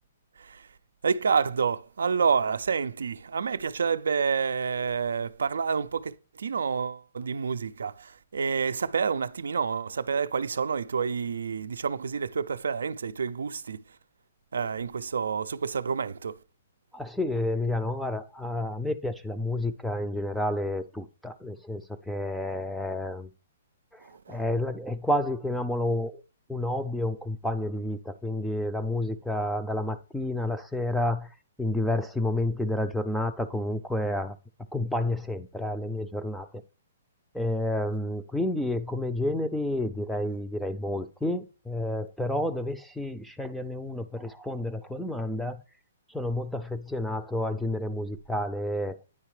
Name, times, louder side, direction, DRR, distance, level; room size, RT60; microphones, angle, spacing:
voice 1, 1.0-13.8 14.5-16.4 24.0-24.4, right 6 dB, 85° right, 0.3 m, -28 dB
voice 2, 16.9-23.3 23.9-24.0 24.3-26.2 26.5-31.3 31.6-34.4 34.7-36.5 37.3-45.6 46.1-49.0, left 1 dB, ahead, 0.4 m, -30 dB
9.7 x 3.3 x 3.2 m
hypercardioid pair, 150°, 0 cm